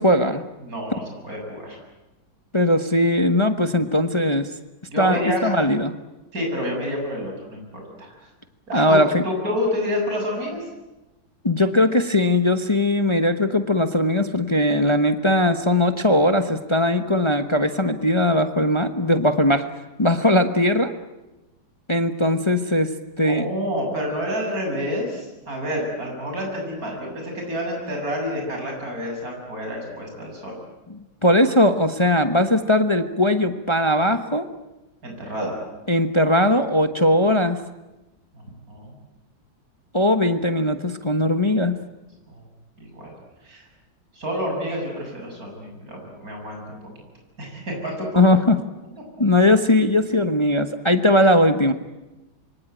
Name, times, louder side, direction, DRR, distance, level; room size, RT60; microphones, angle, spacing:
voice 1, 0.0-0.4 2.5-4.5 5.0-5.9 8.7-9.2 11.4-19.7 20.0-20.9 21.9-23.5 30.9-34.5 35.9-37.6 39.9-41.8 48.1-48.6 49.2-51.7, left 1 dB, 20° left, 8 dB, 0.9 m, -19 dB
voice 2, 0.6-1.8 4.9-5.5 6.3-7.6 8.0-8.2 8.7-10.6 23.2-30.6 35.0-35.6 38.3-39.0 42.3-42.4 42.8-43.1 43.4-43.6 44.1-46.8 47.4-48.1, equal, 45° right, 1 dB, 7.9 m, -28 dB
26.5 x 24.0 x 9.2 m, 1.0 s
omnidirectional pair, 2.1 m